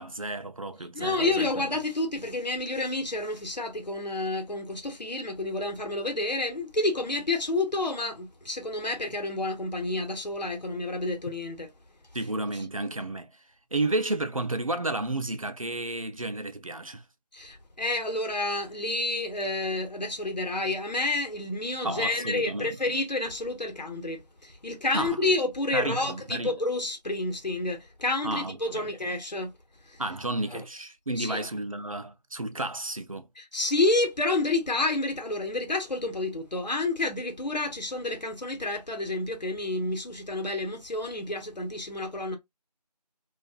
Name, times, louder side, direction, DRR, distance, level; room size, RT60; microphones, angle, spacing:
voice 1, 0.0-1.5 12.1-13.3 13.7-17.0 21.8-22.8 24.9-25.2 25.7-26.5 28.2-28.9 30.0-33.3, right 2 dB, 55° right, 0.4 m, -32 dB
voice 2, 0.9-11.7 17.3-29.5 29.9-30.0 30.5-30.6 31.2-31.5 33.4-42.4, left 2 dB, 80° left, 0.9 m, -29 dB
2.4 x 2.3 x 2.3 m
figure-of-eight pair, 175°, 21 cm